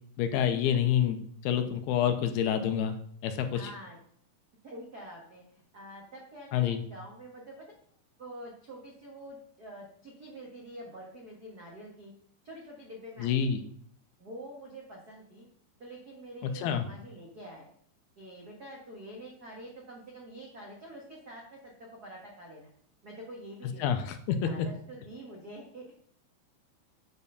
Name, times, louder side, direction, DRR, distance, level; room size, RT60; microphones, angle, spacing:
voice 1, 0.2-1.2 1.4-3.7 6.5-6.8 13.2-13.6 16.4-16.8 23.8-24.5, left 9 dB, 80° left, 8 dB, 2.6 m, -28 dB
voice 2, 3.5-4.0 4.6-7.7 8.2-12.1 12.4-13.6 14.2-15.5 15.8-17.7 18.2-22.7 23.0-24.0 24.4-25.9, right 1 dB, 70° right, -2 dB, 0.9 m, -46 dB
8.5 x 4.5 x 6.8 m, 0.62 s
omnidirectional pair, 4.6 m